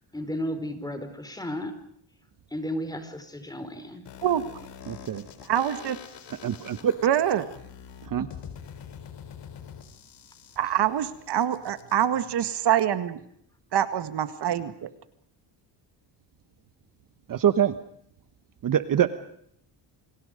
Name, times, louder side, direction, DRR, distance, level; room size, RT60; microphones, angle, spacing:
voice 1, 0.1-1.7 2.5-4.0, equal, 10° left, 8 dB, 4.8 m, -33 dB
sound 1, 4.1-12.1, left 8 dB, 70° left, 4.1 m, -45 dB
voice 2, 4.9-5.2 6.3-7.0 8.1-8.3 17.3-17.8 18.6-19.1, right 9 dB, 45° right, 11 dB, 1.3 m, -24 dB
voice 3, 5.5-6.0 7.0-7.5 10.6-13.2 13.7-14.9, right 10 dB, 65° right, 11 dB, 1.9 m, -25 dB
28.5 x 26.5 x 5.2 m, 0.69 s
cardioid pair, 135°, 44 cm